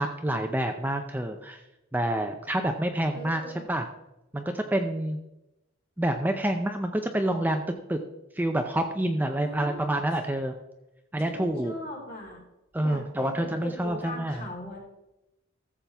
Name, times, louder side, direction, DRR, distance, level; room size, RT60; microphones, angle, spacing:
voice 1, 0.0-1.6 1.9-3.4 3.7-3.9 4.3-5.2 6.0-7.6 7.9-8.0 8.3-10.5 11.1-11.7 12.7-14.4, right 1 dB, 10° right, 5 dB, 0.5 m, -27 dB
voice 2, 3.1-3.6 9.3-9.9 11.2-12.4 12.8-14.8, left 1 dB, 45° left, -3 dB, 3.6 m, -39 dB
14.0 x 7.4 x 3.5 m, 0.93 s
head